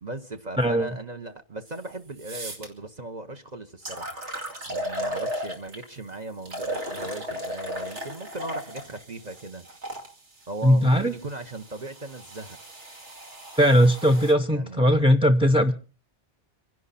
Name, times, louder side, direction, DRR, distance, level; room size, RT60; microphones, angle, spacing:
voice 1, 0.0-4.2 4.7-9.6 10.5-12.6 14.5-15.0, right 2 dB, 40° right, 1.1 m, -38 dB
voice 2, 0.6-0.9 10.6-11.1 13.5-15.7, equal, 5° right, 0.5 m, -19 dB
sound 1, 1.7-1.8 2.2-2.7 3.4-3.5 3.9-5.9 6.5-10.1 10.9-14.3, equal, 90° right, 2.8 m, -35 dB
26.0 x 11.0 x 4.2 m
omnidirectional pair, 1.1 m